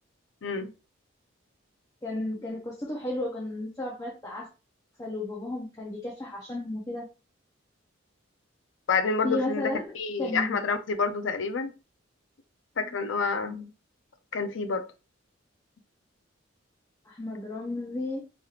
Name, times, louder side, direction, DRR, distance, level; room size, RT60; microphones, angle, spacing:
voice 1, 0.4-0.7 8.9-11.7 12.8-13.7 14.3-14.8, left 4 dB, 70° left, 0.5 m, -28 dB
voice 2, 2.0-4.5 5.0-7.1 9.2-9.9 10.2-10.6 17.1-18.2, left 2 dB, 15° left, 0.6 m, -33 dB
3.1 x 2.9 x 2.4 m
head